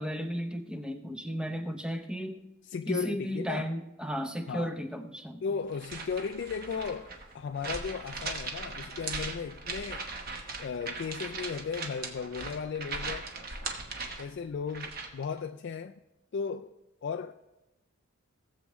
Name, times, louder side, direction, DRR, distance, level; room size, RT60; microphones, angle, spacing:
voice 1, 0.0-2.4 2.9-5.4, equal, 5° right, 0.6 m, -34 dB
voice 2, 2.6-3.7 4.5-4.7 5.4-10.0 10.6-13.3 14.2-16.0 16.3-16.7 17.0-17.3, left 5 dB, 50° left, 0.3 m, -35 dB
sound 1, 5.7-15.2, right 3 dB, 45° right, 1.1 m, -39 dB
18.5 x 7.4 x 3.1 m
head